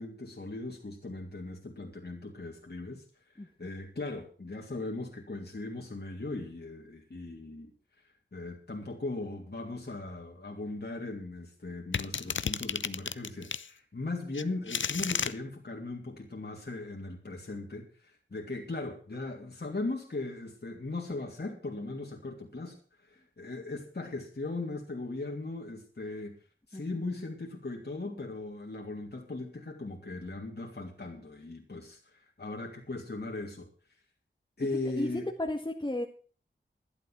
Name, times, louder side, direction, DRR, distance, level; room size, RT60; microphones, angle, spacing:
voice 1, 0.0-3.0 3.3-7.7 8.3-26.4 26.7-33.7 34.6-35.3, left 2 dB, 55° left, 0 dB, 3.0 m, -38 dB
sound 1, 11.9-13.7 14.3-15.3, left 6 dB, 70° left, 0.6 m, -32 dB
voice 2, 35.4-36.1, left 1 dB, 20° left, 2 dB, 1.7 m, -33 dB
11.5 x 11.0 x 6.2 m, 0.40 s
wide cardioid pair, 45°, 20 cm